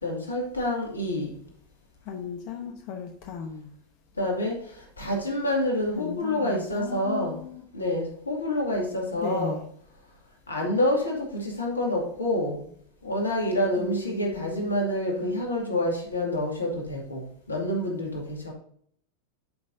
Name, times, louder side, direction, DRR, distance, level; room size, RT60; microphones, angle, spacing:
voice 1, 0.0-1.4 4.2-4.6 5.0-7.4 7.7-9.6 10.5-12.6 13.0-18.5, left 1 dB, 85° left, 0 dB, 2.1 m, -27 dB
voice 2, 2.1-3.7 6.0-7.6 9.2-9.6 13.8-14.8, left 6 dB, 50° left, 3 dB, 1.0 m, -36 dB
10.5 x 5.4 x 2.7 m, 0.64 s
figure-of-eight pair, 90°, 0 cm